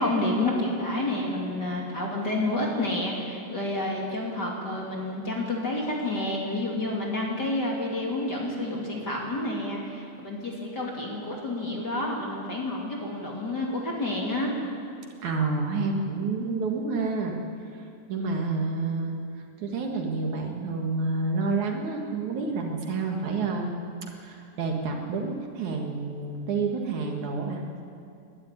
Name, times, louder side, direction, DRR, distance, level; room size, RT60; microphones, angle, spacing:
voice 1, 0.0-14.5, left 1 dB, 30° left, -2 dB, 2.9 m, -29 dB
voice 2, 15.2-17.3 18.1-19.1 19.6-23.8 24.2-27.6, right 3 dB, 60° right, 1 dB, 2.9 m, -29 dB
21.0 x 12.5 x 9.9 m, 2.5 s
omnidirectional pair, 4.0 m